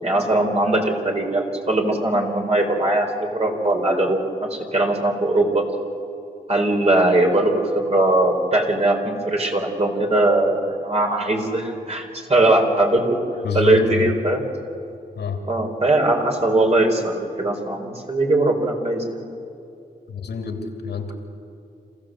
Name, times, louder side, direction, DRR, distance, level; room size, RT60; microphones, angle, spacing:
voice 1, 0.0-5.6 6.5-13.2 13.5-14.4 15.5-19.2, right 2 dB, 35° right, 1 dB, 4.5 m, -20 dB
voice 2, 13.4-14.1 15.1-15.4 20.1-21.1, left 6 dB, 70° left, 4 dB, 2.8 m, -28 dB
27.0 x 15.0 x 7.8 m, 2.5 s
cardioid pair, 60°, 17 cm